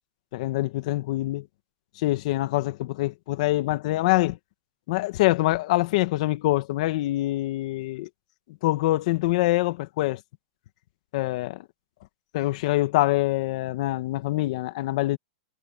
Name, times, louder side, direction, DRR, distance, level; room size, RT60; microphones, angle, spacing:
voice 1, 0.3-1.5 2.0-4.4 4.9-8.1 8.6-10.2 11.1-11.7 12.3-15.2, left 17 dB, 50° left, 1.5 m, -25 dB
supercardioid pair, 155°, 5 cm